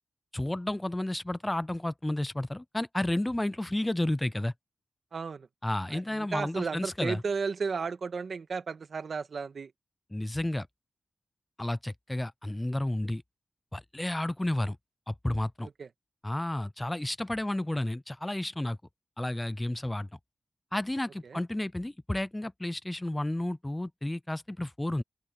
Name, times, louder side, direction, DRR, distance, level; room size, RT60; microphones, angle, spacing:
voice 1, 0.3-4.5 5.6-7.2 10.1-10.7 11.6-13.2 13.7-14.8 15.1-15.7 16.2-18.8 19.2-20.1 20.7-25.0, left 1 dB, 15° left, 0.5 m, -31 dB
voice 2, 5.1-5.5 5.9-9.7 15.6-15.9 21.2-21.4, right 5 dB, 75° right, 1.8 m, -34 dB
open air
cardioid pair, 70°, 0 cm